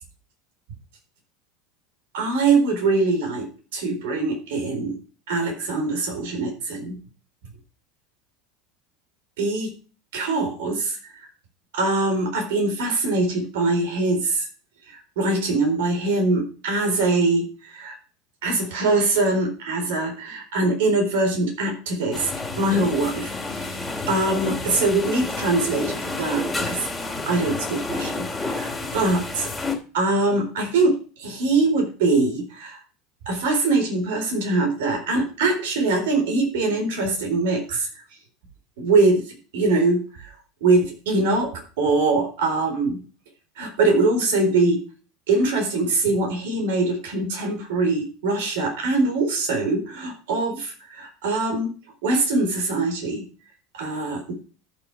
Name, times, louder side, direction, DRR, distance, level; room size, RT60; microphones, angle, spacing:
voice 1, 2.1-3.5 3.7-4.9 5.3-7.0 9.4-9.7 10.1-11.3 11.7-14.5 14.9-18.0 18.4-22.3 22.6-26.8 27.2-29.5 29.9-30.9 31.2-32.8 33.3-37.9 38.8-40.3 40.6-41.5 41.8-43.0 43.6-44.8 45.3-51.7 52.0-53.2 53.7-54.3, right 3 dB, 65° right, 3 dB, 4.1 m, -23 dB
sound 1, 22.1-29.8, left 3 dB, 10° left, 3.0 m, -30 dB
13.5 x 6.2 x 4.8 m, 0.37 s
figure-of-eight pair, 75°, 0 cm